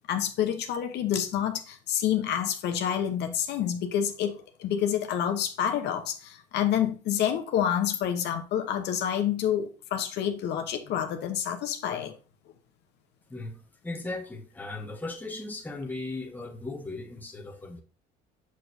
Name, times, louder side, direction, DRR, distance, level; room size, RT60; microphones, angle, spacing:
voice 1, 0.1-12.1, left 9 dB, 70° left, 0.9 m, -28 dB
voice 2, 13.3-17.8, left 2 dB, 10° left, 1.3 m, -37 dB
6.3 x 6.0 x 2.7 m
cardioid pair, 110°, 19 cm